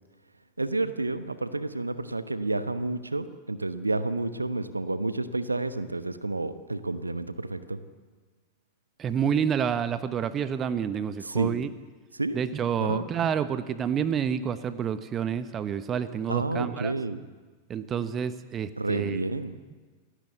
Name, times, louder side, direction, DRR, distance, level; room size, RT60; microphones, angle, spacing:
voice 1, 0.6-7.8 11.2-11.5 12.1-12.4 12.8-13.0 16.3-17.2 18.8-19.5, right 2 dB, 80° right, 12 dB, 1.1 m, -30 dB
voice 2, 9.0-11.7 12.3-16.9 17.7-19.2, right 8 dB, 25° right, 13 dB, 1.0 m, -29 dB
27.5 x 16.5 x 8.2 m, 1.4 s
figure-of-eight pair, 90°, 0 cm